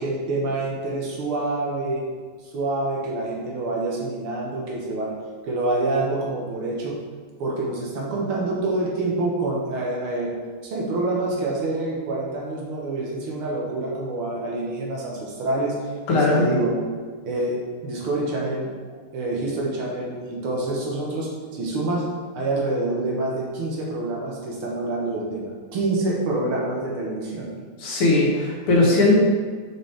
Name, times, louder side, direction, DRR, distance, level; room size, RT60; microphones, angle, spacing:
voice 1, 0.0-2.0 2.5-5.1 5.4-7.0 7.4-10.3 10.6-15.8 16.1-16.7 17.2-22.1 22.3-27.5, right 2 dB, 80° right, -3 dB, 2.2 m, -27 dB
voice 2, 16.1-16.4 27.8-29.3, left 2 dB, 80° left, -3 dB, 2.3 m, -18 dB
6.7 x 6.2 x 3.4 m, 1.5 s
omnidirectional pair, 2.4 m